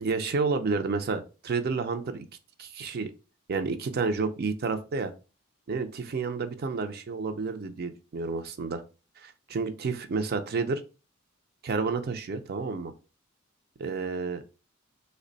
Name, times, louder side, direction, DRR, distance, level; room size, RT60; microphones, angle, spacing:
voice 1, 0.0-2.3 2.6-3.1 3.5-5.1 5.7-8.8 9.2-10.8 11.6-12.9 13.8-14.4, right 4 dB, 50° right, 9 dB, 0.4 m, -30 dB
3.3 x 2.1 x 3.8 m, 0.32 s
head